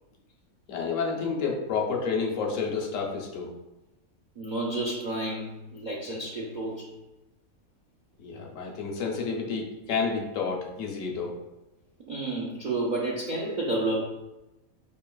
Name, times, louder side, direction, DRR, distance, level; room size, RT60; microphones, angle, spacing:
voice 1, 0.7-3.5 8.2-11.3, left 5 dB, 70° left, -1 dB, 1.1 m, -30 dB
voice 2, 4.4-6.9 12.1-14.0, right 2 dB, 55° right, -3 dB, 0.4 m, -30 dB
5.2 x 2.8 x 2.3 m, 0.98 s
omnidirectional pair, 1.4 m